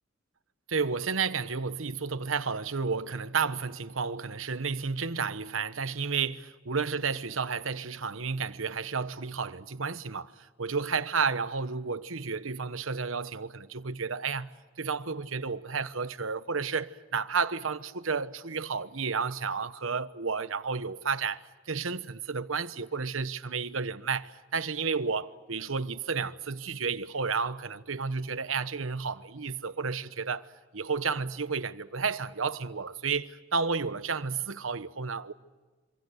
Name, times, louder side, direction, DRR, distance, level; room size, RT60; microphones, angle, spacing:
voice 1, 0.7-6.4 6.7-14.5 14.8-30.5 30.7-35.3, right 5 dB, 90° right, 1.1 m, -32 dB
27.0 x 25.5 x 6.5 m
head